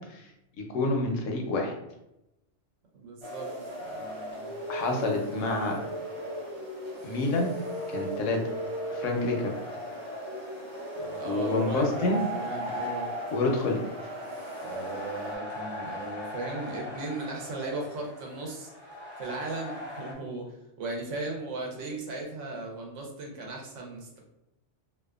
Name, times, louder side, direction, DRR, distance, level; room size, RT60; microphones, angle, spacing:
voice 1, 0.6-1.7 4.7-5.8 7.0-7.5 7.9-8.4 8.9-9.5 11.2-12.2 13.3-13.8, left 2 dB, 80° left, 1 dB, 0.9 m, -28 dB
voice 2, 2.9-3.5 3.8-4.5 10.9-13.1 14.6-18.7 19.2-24.2, right 3 dB, 80° right, -1 dB, 1.0 m, -37 dB
sound 1, 3.2-15.4, equal, 30° right, 0.6 m, -36 dB
sound 2, 3.7-20.1, left 2 dB, 30° left, 0.5 m, -45 dB
2.6 x 2.2 x 2.3 m, 0.87 s
omnidirectional pair, 1.3 m